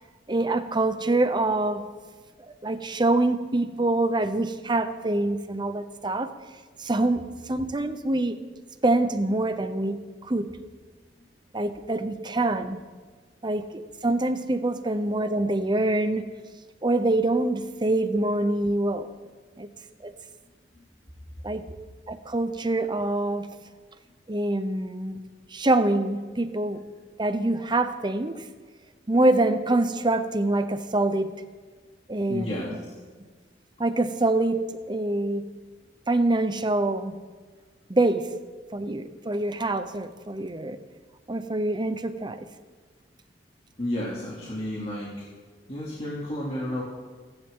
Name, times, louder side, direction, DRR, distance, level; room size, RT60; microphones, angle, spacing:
voice 1, 0.3-1.8 2.6-6.3 6.8-8.4 8.8-10.5 11.5-12.8 13.4-16.3 16.8-19.1 19.6-19.7 20.0-20.1 21.4-21.6 22.1-23.5 24.3-25.2 25.5-26.8 27.2-28.4 29.1-31.3 32.1-32.7 33.8-35.4 36.1-37.1 37.9-38.3 38.7-40.8 41.3-42.5, right 2 dB, 25° right, 10 dB, 0.9 m, -25 dB
voice 2, 32.3-32.7 43.8-45.3 45.7-46.8, left 1 dB, 35° left, -6 dB, 2.8 m, -31 dB
29.5 x 10.5 x 3.8 m, 1.5 s
head